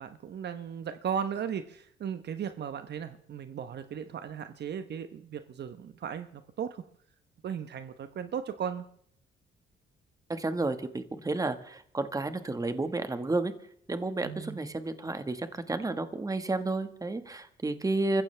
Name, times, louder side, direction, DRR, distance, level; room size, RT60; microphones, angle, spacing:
voice 1, 0.0-6.8 7.4-8.8 14.2-14.7, right 8 dB, 60° right, 10 dB, 1.0 m, -36 dB
voice 2, 10.3-13.5 13.9-18.2, right 2 dB, 15° right, 9 dB, 1.5 m, -31 dB
28.0 x 15.0 x 3.4 m, 0.63 s
cardioid pair, 90°, 20 cm